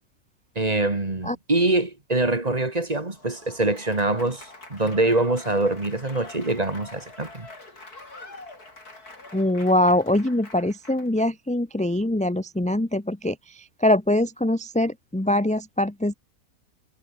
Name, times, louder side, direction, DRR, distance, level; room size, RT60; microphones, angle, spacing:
voice 1, 0.6-7.5, right 2 dB, 25° right, 2.3 m, -24 dB
Applause / Crowd, 3.1-11.2, left 2 dB, 85° left, 6.2 m, -45 dB
voice 2, 9.3-16.1, left 1 dB, 5° left, 1.0 m, -23 dB
omnidirectional pair, 1.6 m